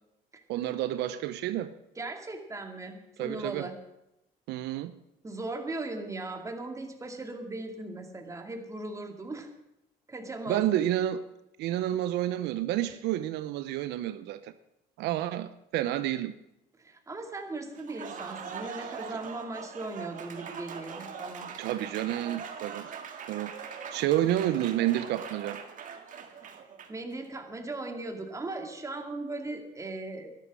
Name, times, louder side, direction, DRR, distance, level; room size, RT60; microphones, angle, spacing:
voice 1, 0.5-1.7 3.2-3.7 4.5-4.9 10.5-11.2 11.6-14.5 15.0-16.3 19.1-19.2 21.6-22.9 23.3-25.6, right 13 dB, 85° right, 0.7 m, -30 dB
voice 2, 2.0-3.8 5.2-9.5 10.1-10.7 16.8-21.5 26.9-30.3, right 2 dB, 20° right, 2.4 m, -38 dB
Applause, 17.7-27.1, right 6 dB, 50° right, 1.8 m, -42 dB
13.0 x 11.5 x 6.2 m
cardioid pair, 110°, 17 cm